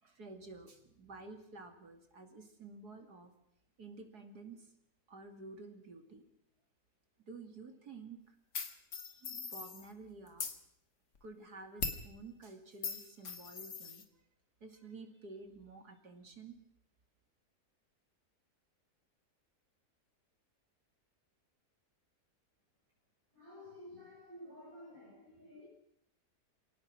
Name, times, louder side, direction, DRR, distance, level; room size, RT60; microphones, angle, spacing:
voice 1, 0.0-3.3 3.8-4.7 5.1-6.2 7.3-8.4 9.1-10.5 11.2-14.1 14.6-16.6, right 3 dB, 70° right, 6 dB, 3.1 m, -51 dB
sound 1, 8.5-9.9 10.3-10.6 11.8-12.1 12.8-14.0, left 5 dB, 85° left, 2.5 m, -40 dB
voice 2, 23.3-25.7, left 1 dB, 30° right, -4 dB, 6.7 m, -52 dB
28.0 x 18.0 x 6.1 m, 0.74 s
omnidirectional pair, 1.8 m